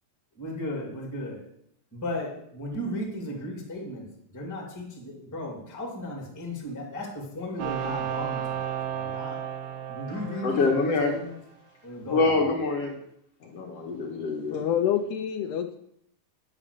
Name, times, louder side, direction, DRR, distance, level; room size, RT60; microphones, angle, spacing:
voice 1, 0.3-1.4 1.9-4.1 4.3-9.4 9.9-11.4 11.8-12.5, left 1 dB, 5° left, 0 dB, 1.5 m, -35 dB
sound 1, 7.6-11.3, right 9 dB, 80° right, 3.2 m, -33 dB
voice 2, 10.4-11.1 12.1-12.9 13.4-14.6, left 3 dB, 55° left, 0 dB, 2.0 m, -25 dB
voice 3, 14.5-15.8, left 9 dB, 80° left, 6 dB, 2.6 m, -27 dB
9.7 x 7.4 x 6.7 m, 0.73 s
omnidirectional pair, 4.7 m